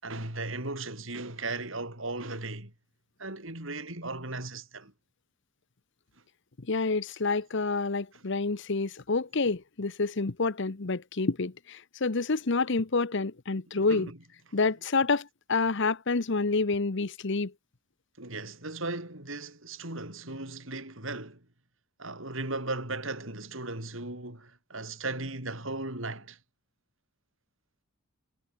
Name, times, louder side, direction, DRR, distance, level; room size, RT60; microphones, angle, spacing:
voice 1, 0.0-2.7 3.2-4.9 8.1-8.2 13.7-14.2 18.2-21.4 22.0-26.4, right 2 dB, 65° right, 6.9 m, -37 dB
voice 2, 6.6-14.1 14.5-17.5, left 3 dB, 60° left, 1.0 m, -28 dB
head